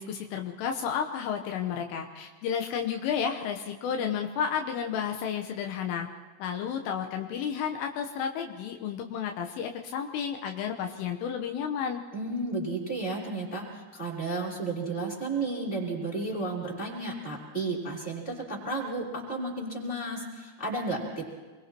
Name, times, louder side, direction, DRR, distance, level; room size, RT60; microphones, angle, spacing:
voice 1, 0.0-6.1 6.4-12.0, left 7 dB, 80° left, 4 dB, 3.7 m, -32 dB
voice 2, 12.1-21.3, right 2 dB, 10° left, -4 dB, 5.3 m, -33 dB
27.0 x 23.0 x 4.5 m, 1.4 s
omnidirectional pair, 5.8 m